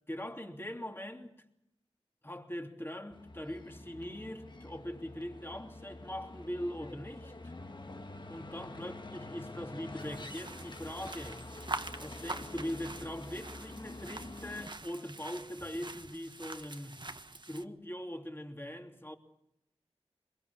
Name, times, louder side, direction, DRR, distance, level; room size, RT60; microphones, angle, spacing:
voice 1, 0.1-1.3 2.2-7.5 8.2-11.4 12.0-17.1 17.5-19.1, equal, 20° left, 3.0 m, -41 dB
sound 1, 3.1-14.7, left 2 dB, 45° left, 1.4 m, -47 dB
sound 2, 10.0-17.6, right 2 dB, 45° right, 1.3 m, -45 dB
23.5 x 22.0 x 7.2 m
wide cardioid pair, 55°, 11 cm